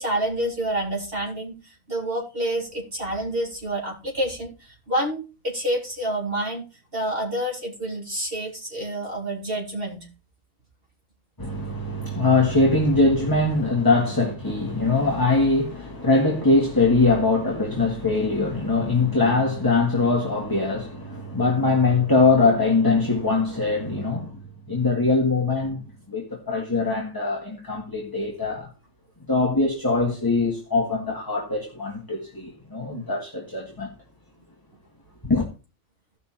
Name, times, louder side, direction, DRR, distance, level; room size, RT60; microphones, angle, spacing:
voice 1, 0.0-6.6 6.9-10.1 32.9-33.0, right 1 dB, 45° right, 4.0 m, -28 dB
voice 2, 11.4-24.4 24.7-28.7 29.3-33.9 35.2-35.5, left 3 dB, 15° left, 1.8 m, -22 dB
15.5 x 5.9 x 4.4 m
omnidirectional pair, 1.4 m